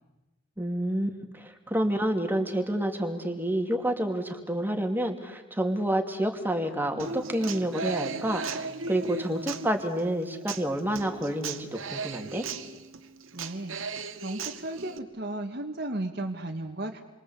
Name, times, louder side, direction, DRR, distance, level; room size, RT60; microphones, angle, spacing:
voice 1, 0.6-8.6 8.9-12.5, right 1 dB, 10° right, 5 dB, 2.8 m, -29 dB
Human voice / Acoustic guitar, 7.0-15.0, right 4 dB, 80° right, 1.9 m, -37 dB
voice 2, 13.3-13.8 14.2-17.0, right 1 dB, 50° right, 1 dB, 1.8 m, -34 dB
29.5 x 24.0 x 8.3 m, 1.1 s
head